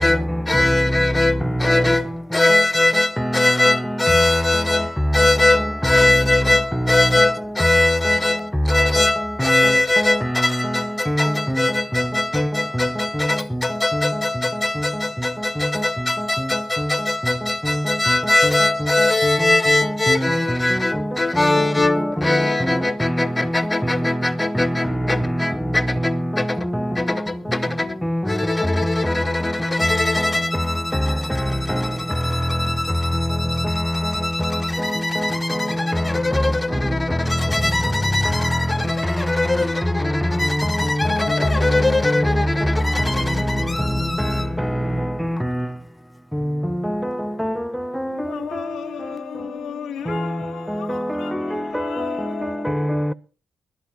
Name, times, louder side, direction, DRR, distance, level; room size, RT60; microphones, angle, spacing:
voice 1, 0.0-26.7 27.0-44.5, left 2 dB, 15° left, 1.2 m, -22 dB
voice 2, 3.2-3.7 8.1-8.2 9.4-10.7 11.1-11.7 11.9-12.1 12.3-12.5 12.8-12.9 13.5-13.6 15.8-15.9 20.1-20.8 22.6-23.3 23.8-24.2 24.5-25.0 25.2-25.4 26.0-26.3 26.7-26.8 28.0-28.2 28.9-29.1 30.2-30.3 31.4-31.8 34.5-34.9 35.2-35.6 35.9-36.0 41.1-41.3 42.0-42.3 43.5-43.6 44.2-44.3 44.6-45.7 46.8-47.5 50.1-50.3 50.9-52.1 52.6-53.1, equal, ahead, 0.7 m, -24 dB
voice 3, 27.4-28.1 35.4-45.0 48.0-53.0, left 8 dB, 80° left, 2.1 m, -37 dB
20.5 x 14.0 x 2.8 m
cardioid pair, 75°, 0 cm